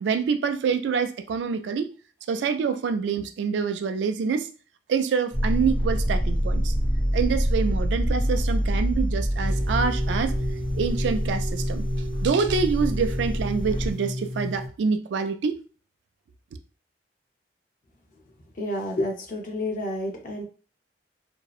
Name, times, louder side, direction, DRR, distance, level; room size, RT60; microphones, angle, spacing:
voice 1, 0.0-1.9 2.3-4.5 4.9-6.7 7.1-10.4 10.7-11.8 12.2-15.6, right 5 dB, 85° right, 9 dB, 0.3 m, -26 dB
sound 1, 5.3-13.9, equal, 30° left, 1.1 m, -26 dB
sound 2, 9.4-14.7, left 1 dB, ahead, 0.5 m, -32 dB
voice 2, 18.6-20.4, left 1 dB, 50° left, 1 dB, 0.6 m, -29 dB
2.6 x 2.0 x 2.3 m, 0.37 s
head